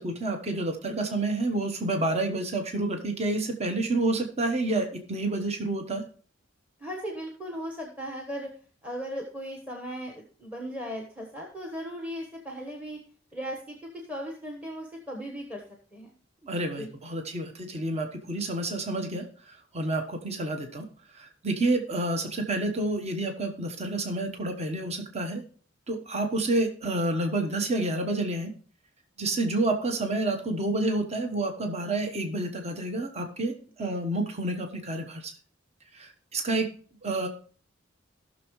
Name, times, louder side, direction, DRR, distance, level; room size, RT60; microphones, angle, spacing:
voice 1, 0.0-6.0 16.4-20.9 21.1-25.4 25.9-28.5 29.2-35.3 35.9-36.7 37.0-37.3, right 2 dB, 35° right, 5 dB, 1.0 m, -29 dB
voice 2, 6.8-8.5 8.8-13.0 13.3-13.7 14.1-15.6 15.9-16.1 16.7-16.9 33.8-33.9, equal, 10° right, 1 dB, 1.2 m, -37 dB
17.0 x 6.3 x 3.1 m, 0.43 s
head